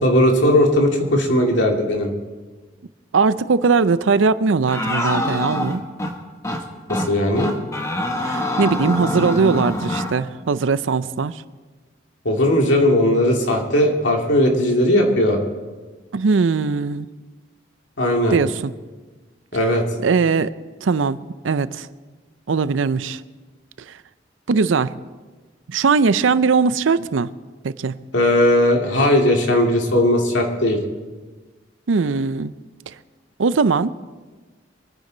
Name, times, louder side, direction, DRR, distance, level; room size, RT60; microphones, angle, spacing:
voice 1, 0.0-2.1 6.9-7.5 12.2-15.4 18.0-18.4 19.5-19.8 28.1-30.8, left 1 dB, 75° left, 1 dB, 2.3 m, -17 dB
voice 2, 3.1-5.8 8.2-11.4 16.1-17.1 18.3-18.7 20.0-20.5 20.8-21.9 22.5-23.2 23.9-24.0 24.5-24.9 25.7-27.3 27.6-28.0 31.9-32.5 33.4-33.9, right 4 dB, 85° right, 15 dB, 0.5 m, -20 dB
sound 1, 4.7-6.1 6.4-6.6 6.9-7.1 7.4-10.1, left 1 dB, 15° left, 1.1 m, -24 dB
24.0 x 9.7 x 3.9 m, 1.3 s
head